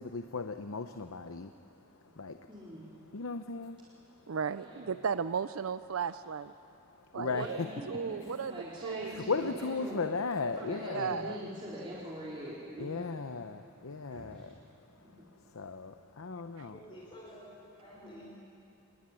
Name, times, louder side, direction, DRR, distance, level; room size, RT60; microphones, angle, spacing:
voice 1, 0.0-1.5 2.2-2.5 3.1-3.8 7.2-7.7 9.2-11.3 12.8-14.5 15.5-16.8, left 4 dB, 85° left, 8 dB, 0.8 m, -36 dB
voice 2, 2.5-2.9 4.6-5.0 7.2-7.7 8.2-10.0 10.5-13.1 14.1-14.5 15.0-15.2 16.8-16.9 17.8-18.3, equal, 25° right, -7 dB, 4.1 m, -43 dB
voice 3, 4.3-6.5 7.1-7.6 7.9-9.1 10.9-11.4 16.6-16.7, right 6 dB, 85° right, 13 dB, 0.5 m, -35 dB
voice 4, 16.6-18.4, equal, 25° left, -6 dB, 4.8 m, -51 dB
25.0 x 21.0 x 9.9 m, 2.8 s
head